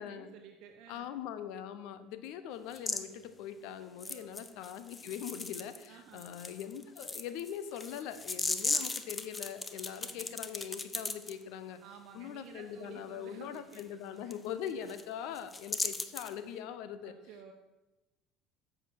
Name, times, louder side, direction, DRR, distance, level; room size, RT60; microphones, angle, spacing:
voice 1, 0.0-1.2 3.8-4.3 5.9-6.4 9.8-10.4 11.8-14.4 14.8-15.0 17.0-17.5, right 7 dB, 60° right, 3 dB, 0.9 m, -54 dB
voice 2, 0.9-11.8 12.1-17.1, left 9 dB, 65° left, 12 dB, 0.7 m, -42 dB
sound 1, 2.7-3.0 4.0-5.9 6.2-11.3 13.7-13.8 14.3-14.4 14.7-15.0 15.4-16.3, left 3 dB, 20° left, 0.8 m, -37 dB
8.2 x 6.3 x 6.1 m, 1.1 s
hypercardioid pair, 75°, 0 cm